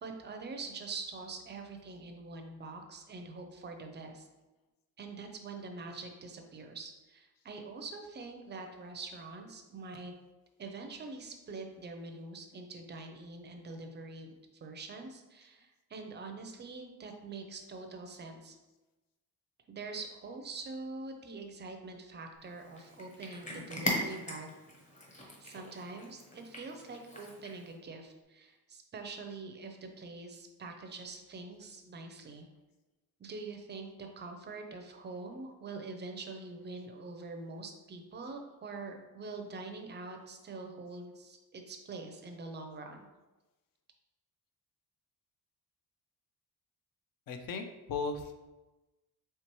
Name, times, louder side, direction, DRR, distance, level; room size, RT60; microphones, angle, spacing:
voice 1, 0.0-4.3 5.0-10.1 10.6-18.6 19.7-24.5 25.1-32.5 33.2-43.1, right 3 dB, 30° right, 4 dB, 0.4 m, -44 dB
Cat, 22.5-27.7, left 1 dB, 20° left, 0.7 m, -40 dB
voice 2, 47.3-48.3, left 4 dB, 60° left, 6 dB, 0.6 m, -36 dB
4.5 x 3.3 x 2.9 m, 1.1 s
wide cardioid pair, 165°, 38 cm